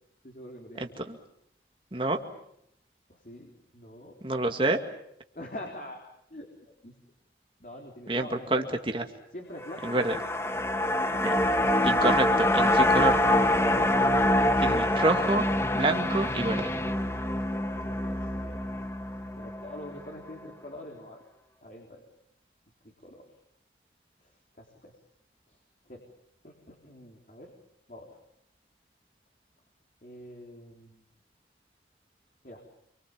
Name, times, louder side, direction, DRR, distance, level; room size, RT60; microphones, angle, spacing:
voice 1, 0.2-1.0 2.1-2.3 3.1-4.2 4.5-4.6 5.3-6.0 6.3-6.9 7.6-8.8 9.3-10.2 17.6-18.6 19.3-21.2 21.6-22.0 22.8-23.3 24.2-25.0 25.5-25.6 25.8-26.1 26.4-27.5 27.9-28.2 30.0-31.0 32.4-32.6, left 1 dB, 45° left, 0 dB, 4.0 m, -45 dB
voice 2, 0.8-1.2 1.9-2.2 4.2-4.8 8.1-9.0 9.8-10.2 11.1-11.3 11.8-13.2 14.6-15.5 15.7-16.7, right 2 dB, 30° right, 4 dB, 2.1 m, -28 dB
sound 1, 9.6-20.0 20.3-20.4, left 1 dB, 15° left, 1.2 m, -25 dB
28.0 x 24.5 x 7.3 m, 0.74 s
head